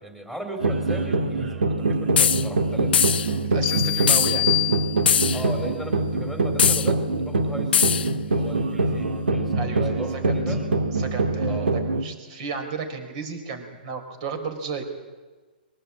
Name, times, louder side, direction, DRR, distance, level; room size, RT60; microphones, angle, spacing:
voice 1, 0.0-3.0 5.3-10.7 11.5-11.7, right 1 dB, 10° right, 3 dB, 3.9 m, -36 dB
sound 1, 0.6-12.0, right 2 dB, 90° right, 2.0 m, -24 dB
sound 2, 2.2-2.4 2.9-3.3 4.1-4.4 5.1-5.4 6.6-6.9 7.7-8.1, left 8 dB, 75° left, 0.9 m, -20 dB
voice 2, 3.5-4.5 9.5-10.3 11.0-14.9, right 5 dB, 45° right, 7 dB, 4.9 m, -33 dB
sound 3, 3.6-5.4, left 19 dB, 30° left, 0.7 m, -27 dB
22.5 x 19.0 x 8.9 m, 1.3 s
hypercardioid pair, 140°, 5 cm